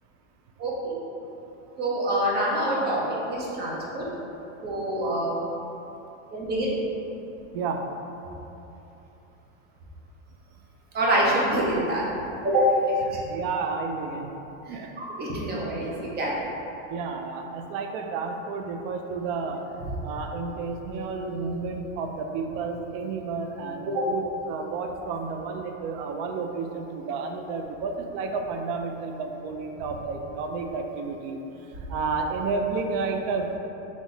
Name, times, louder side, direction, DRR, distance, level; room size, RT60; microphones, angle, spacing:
voice 1, 0.6-1.0 1.8-4.1 4.6-5.4 6.3-6.7 10.9-12.0 12.4-12.7 14.7-16.3 19.8-19.9 23.9-24.0, right 1 dB, 25° right, -5 dB, 0.9 m, -26 dB
voice 2, 13.2-14.3 14.7-14.9 16.9-19.6 20.0-31.4 31.9-33.5, right 4 dB, 50° right, 4 dB, 0.5 m, -31 dB
4.1 x 3.0 x 4.0 m, 3.0 s
supercardioid pair, 140°, 40 cm